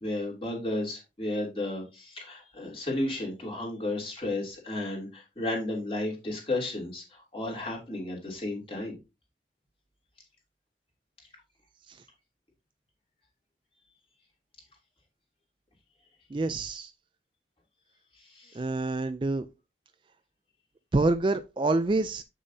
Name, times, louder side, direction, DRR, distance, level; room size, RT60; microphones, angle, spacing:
voice 1, 0.0-9.0 18.2-18.6, left 2 dB, 30° left, 2.7 m, -33 dB
voice 2, 16.3-16.9 18.5-19.5 20.9-22.2, right 2 dB, 30° right, 0.3 m, -27 dB
7.8 x 6.3 x 2.7 m
head